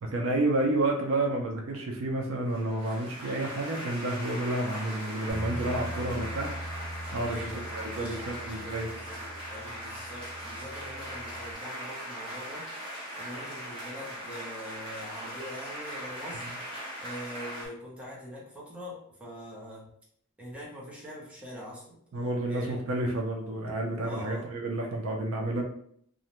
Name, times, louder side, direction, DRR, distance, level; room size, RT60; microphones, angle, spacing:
voice 1, 0.0-6.5 7.1-7.5 7.7-8.9 22.1-25.6, right 2 dB, 65° right, 1 dB, 0.5 m, -30 dB
sound 1, 2.5-17.7, equal, 25° right, 1.0 m, -40 dB
Bass guitar, 5.3-11.5, right 1 dB, 35° left, 0.7 m, -41 dB
voice 2, 7.2-16.5 17.0-19.9 20.4-22.0 22.5-22.8 24.0-24.5, equal, 5° right, -5 dB, 0.6 m, -43 dB
2.5 x 2.1 x 2.9 m, 0.66 s
head